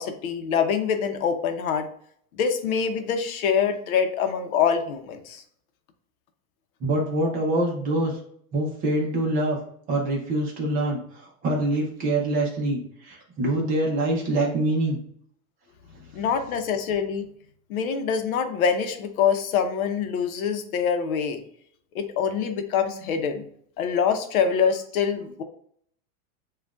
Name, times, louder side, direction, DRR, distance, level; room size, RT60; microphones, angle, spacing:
voice 1, 0.0-1.9 2.4-5.4 16.1-17.3 17.7-21.4 21.9-23.4 23.8-25.4, left 7 dB, 85° left, 7 dB, 0.8 m, -25 dB
voice 2, 6.8-8.2 8.5-9.6 9.9-15.0, right 1 dB, 20° right, -1 dB, 0.7 m, -25 dB
7.3 x 2.5 x 2.4 m, 0.64 s
supercardioid pair, 170°, 42 cm